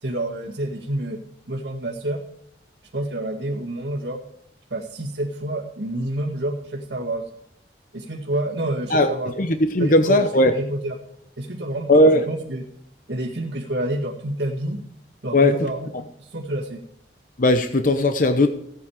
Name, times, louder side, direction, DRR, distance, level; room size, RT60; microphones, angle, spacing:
voice 1, 0.0-1.2 1.5-2.2 2.9-4.2 4.7-7.3 7.9-9.3 9.8-11.0 11.4-12.7 13.1-14.8 15.2-15.9 16.2-16.8, right 1 dB, 75° right, -1 dB, 2.0 m, -28 dB
voice 2, 9.4-10.5 11.9-12.2 15.3-15.5 17.4-18.5, left 1 dB, 50° left, 7 dB, 0.9 m, -17 dB
16.0 x 8.8 x 4.9 m, 0.77 s
head